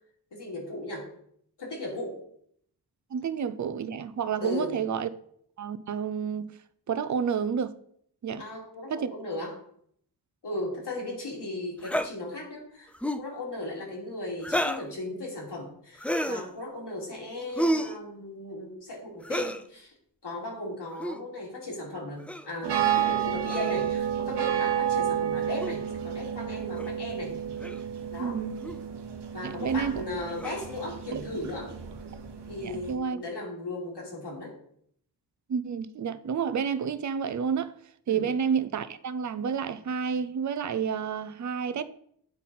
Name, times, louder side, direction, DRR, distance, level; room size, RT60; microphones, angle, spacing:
voice 1, 0.3-1.1 1.6-2.2 4.4-4.8 8.4-9.5 10.4-12.9 13.2-19.9 20.2-27.4 28.1-28.4 29.3-31.7 32.5-34.5 38.1-38.2, left 1 dB, 70° left, 2.6 m, -37 dB
voice 2, 3.1-5.1 5.6-6.5 6.9-7.7 8.2-8.5 8.9-9.1 28.2-28.6 29.4-30.0 31.1-31.2 32.6-33.2 35.5-37.7 38.1-41.8, right 7 dB, 45° right, 0.5 m, -30 dB
sound 1, 11.8-12.1 12.9-13.3 14.4-14.9 16.0-16.5 17.6-18.0 19.2-19.6 20.9-21.2 22.3-22.5 23.5-23.9 25.6-25.7 26.8-26.9 27.6-27.8 28.6-28.8 30.4-30.7, equal, 5° left, 0.4 m, -30 dB
sound 2, 22.6-32.9, right 10 dB, 75° right, 1.0 m, -31 dB
9.0 x 4.1 x 4.2 m
cardioid pair, 55°, 42 cm